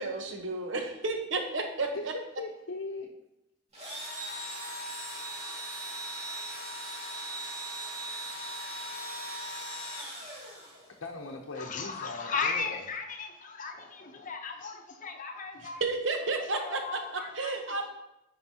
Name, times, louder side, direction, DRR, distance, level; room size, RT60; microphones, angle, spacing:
voice 1, 0.0-2.1 15.8-17.0 17.4-17.9, right 3 dB, 70° right, 4 dB, 1.0 m, -32 dB
voice 2, 1.9-3.1 11.0-12.8, left 3 dB, 85° left, -1 dB, 0.7 m, -39 dB
Engine / Drill, 3.7-11.1, right 1 dB, 35° right, 2.1 m, -39 dB
voice 3, 11.5-15.8 16.4-17.6, left 5 dB, 40° left, 4 dB, 0.8 m, -36 dB
9.6 x 5.1 x 2.8 m, 0.91 s
head